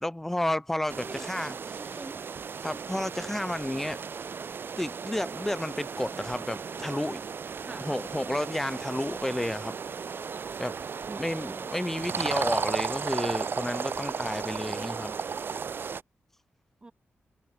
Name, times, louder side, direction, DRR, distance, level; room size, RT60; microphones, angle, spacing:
voice 1, 0.0-1.6 2.6-4.0 4.8-7.2 7.8-9.8 10.6-10.8 11.2-15.1, left 1 dB, 5° left, 0.6 m, -31 dB
sound 1, 0.9-16.0, right 6 dB, 50° right, 1.7 m, -35 dB
voice 2, 1.0-2.2 7.6-8.0 11.1-11.7 16.8-16.9, right 2 dB, 20° right, 2.6 m, -45 dB
wide cardioid pair, 155°, 5 cm